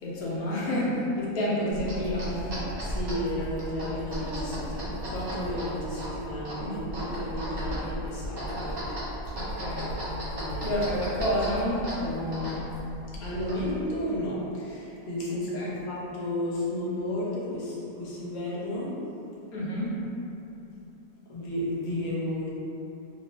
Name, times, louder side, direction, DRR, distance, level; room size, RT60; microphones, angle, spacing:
voice 1, 0.0-2.5 6.6-6.8 9.3-9.9 10.6-12.6 15.5-15.7 19.5-20.1, equal, 85° left, -6 dB, 1.2 m, -29 dB
sound 1, 1.7-13.9, equal, 65° right, 1.5 m, -35 dB
voice 2, 2.8-8.8 10.3-10.8 13.2-18.9 21.3-22.5, left 1 dB, 45° left, -7 dB, 0.6 m, -33 dB
3.0 x 2.5 x 3.2 m, 3.0 s
omnidirectional pair, 1.5 m